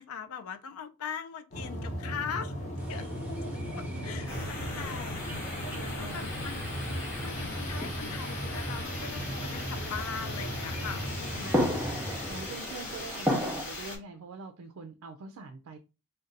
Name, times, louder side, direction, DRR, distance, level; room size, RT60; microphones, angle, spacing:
voice 1, 0.0-2.6 2.9-3.1 3.7-5.3 5.6-6.6 6.9-11.8, left 7 dB, 75° left, 0.4 m, -41 dB
sound 1, 1.5-12.5, equal, 35° left, 0.9 m, -37 dB
sound 2, 2.8-13.6, equal, 5° right, 0.6 m, -37 dB
voice 2, 3.9-4.8 5.6-6.3 11.3-15.8, right 3 dB, 70° right, 0.4 m, -46 dB
sound 3, 4.3-14.0, left 2 dB, 50° left, 1.2 m, -40 dB
2.5 x 2.2 x 3.9 m
head